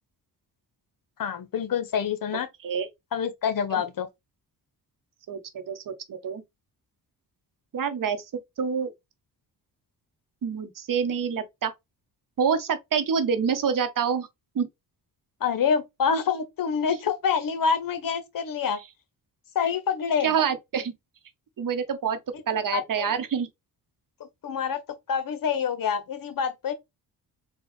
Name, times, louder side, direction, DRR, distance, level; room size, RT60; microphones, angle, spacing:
voice 1, 1.2-2.5 3.1-4.1 15.4-18.8 19.5-20.3 22.3-22.4 22.7-23.1 24.2-24.8 25.1-26.7, left 6 dB, 55° left, 0.9 m, -27 dB
voice 2, 5.3-6.4 7.7-8.3 8.6-8.9 10.4-11.7 12.4-14.3 14.5-14.7 20.2-20.9 21.6-22.2 22.5-23.5, right 7 dB, 55° right, 0.9 m, -27 dB
4.2 x 2.3 x 3.2 m
cardioid pair, 65°, 39 cm